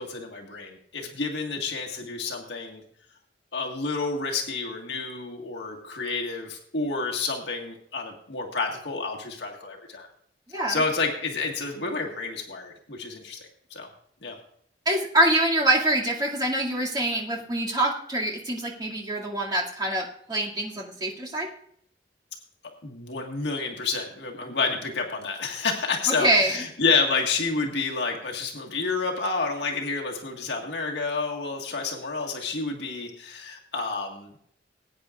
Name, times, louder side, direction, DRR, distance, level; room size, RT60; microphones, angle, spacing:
voice 1, 0.0-2.8 3.5-10.1 10.7-13.4 13.7-13.9 14.2-14.4 22.8-34.4, left 4 dB, 70° left, 0 dB, 1.7 m, -29 dB
voice 2, 10.5-10.8 14.9-21.5 26.1-26.6, right 1 dB, 25° right, -3 dB, 2.3 m, -25 dB
20.0 x 9.2 x 2.5 m, 0.67 s
head